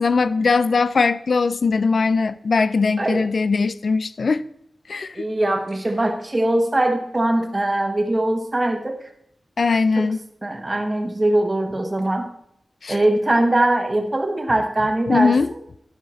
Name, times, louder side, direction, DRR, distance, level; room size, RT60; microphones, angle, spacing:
voice 1, 0.0-4.4 4.9-5.1 9.6-10.2 12.8-13.0 15.1-15.5, left 4 dB, 65° left, 0.3 m, -20 dB
voice 2, 5.1-9.0 10.0-10.1 10.4-12.3 12.9-15.3, right 1 dB, 25° right, 1.2 m, -21 dB
12.0 x 4.9 x 4.2 m
wide cardioid pair, 100°, 0 cm